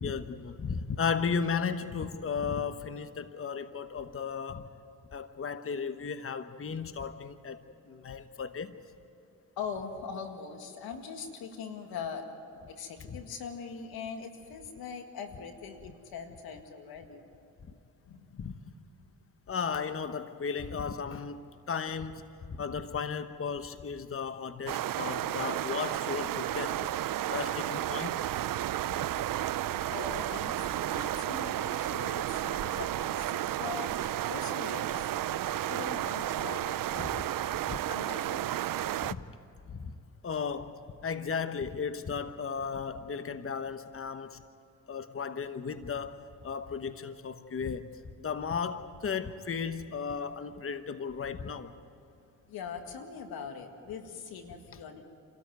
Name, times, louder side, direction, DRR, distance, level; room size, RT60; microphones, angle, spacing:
voice 1, 0.0-4.7 5.1-8.8 13.1-13.2 18.4-18.5 19.5-22.2 22.5-26.9 27.3-28.2 37.0-37.2 37.7-37.8 39.0-39.2 39.7-39.9 40.2-44.4 44.9-51.8, left 6 dB, 40° left, 10 dB, 1.1 m, -35 dB
voice 2, 9.6-12.3 12.7-17.2 18.0-18.6 29.9-33.9 34.3-35.1 35.7-38.8 52.5-55.1, left 6 dB, 85° left, 5 dB, 2.0 m, -42 dB
sound 1, 24.7-39.1, right 12 dB, 65° right, 0.6 m, -32 dB
28.0 x 13.5 x 9.4 m, 2.7 s
supercardioid pair, 55°, 36 cm